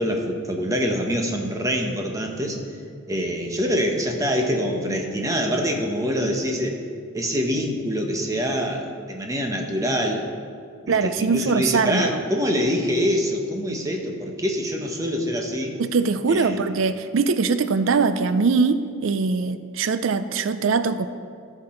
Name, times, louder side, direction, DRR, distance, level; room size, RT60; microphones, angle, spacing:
voice 1, 0.0-2.6 3.1-6.8 7.1-10.2 10.8-15.7 16.3-16.7, equal, 15° right, 2 dB, 1.0 m, -25 dB
voice 2, 10.9-12.2 15.8-21.1, right 4 dB, 65° right, 12 dB, 0.4 m, -22 dB
14.5 x 5.9 x 4.4 m, 2.3 s
head